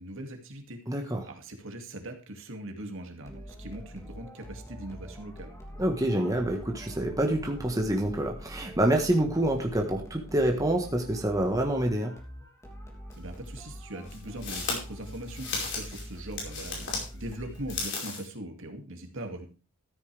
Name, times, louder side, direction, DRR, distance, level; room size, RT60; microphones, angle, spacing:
voice 1, 0.0-0.8 1.3-5.6 13.2-19.5, right 1 dB, 60° right, 4 dB, 2.4 m, -41 dB
voice 2, 0.9-1.3 5.8-12.1, right 1 dB, 15° right, 2 dB, 1.5 m, -27 dB
sound 1, 3.3-18.2, equal, 15° left, 2.9 m, -44 dB
sound 2, 13.1-13.2 14.1-17.1 17.5-18.3, left 4 dB, 55° left, 5.0 m, -35 dB
14.0 x 9.7 x 3.5 m, 0.33 s
head